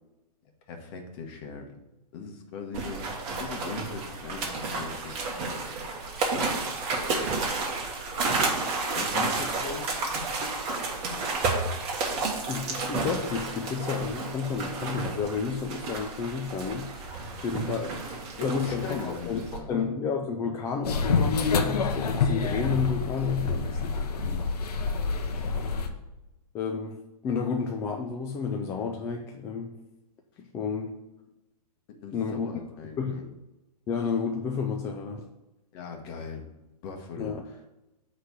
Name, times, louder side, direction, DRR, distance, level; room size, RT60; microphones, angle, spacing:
voice 1, 0.7-1.7 2.1-3.1 3.4-5.6 6.3-6.5 8.9-9.9 17.2-17.6 18.4-19.9 24.2-24.5 32.0-33.2 35.7-36.4 36.8-37.3, left 5 dB, 40° left, 3 dB, 1.3 m, -39 dB
sound 1, 2.7-19.6, right 3 dB, 30° right, 1.5 m, -31 dB
voice 2, 12.5-17.9 18.4-24.0 26.5-29.8 30.4-31.0 32.1-32.5 33.0-33.3 33.9-35.3 37.2-37.4, left 5 dB, 15° left, 1 dB, 0.4 m, -31 dB
sound 2, 20.8-25.9, left 4 dB, 75° left, 1.0 m, -27 dB
7.9 x 3.3 x 6.2 m, 0.98 s
hypercardioid pair, 145°, 20 cm